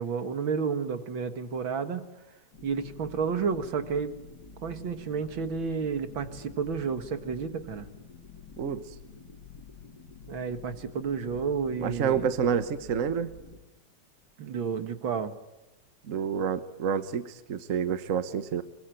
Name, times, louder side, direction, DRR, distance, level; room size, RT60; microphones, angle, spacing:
voice 1, 0.0-2.0 2.6-4.1 4.6-7.9 10.3-12.3 14.4-15.4, right 6 dB, 75° right, 9 dB, 2.5 m, -31 dB
sound 1, 2.5-13.6, left 3 dB, 55° left, 3.6 m, -48 dB
voice 2, 11.8-13.3 16.1-18.6, right 7 dB, 45° right, 11 dB, 1.3 m, -28 dB
24.0 x 23.5 x 9.2 m, 1.0 s
omnidirectional pair, 2.2 m